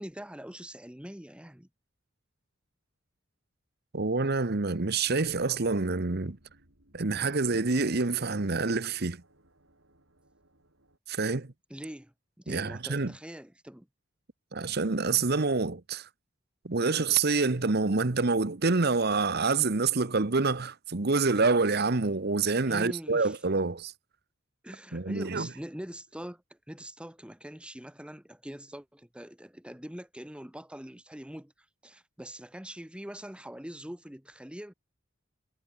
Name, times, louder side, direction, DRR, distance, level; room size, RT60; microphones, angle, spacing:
voice 1, 0.0-1.7 11.7-13.9 22.7-23.4 24.6-31.5 31.8-34.7, equal, 5° right, 1.3 m, -43 dB
voice 2, 3.9-6.4 6.9-9.2 11.1-11.5 12.5-13.1 14.5-16.1 16.6-23.9 24.9-25.5, right 4 dB, 55° right, 1.1 m, -27 dB
sound 1, 4.9-11.0, right 1 dB, 75° right, 8.0 m, -62 dB
head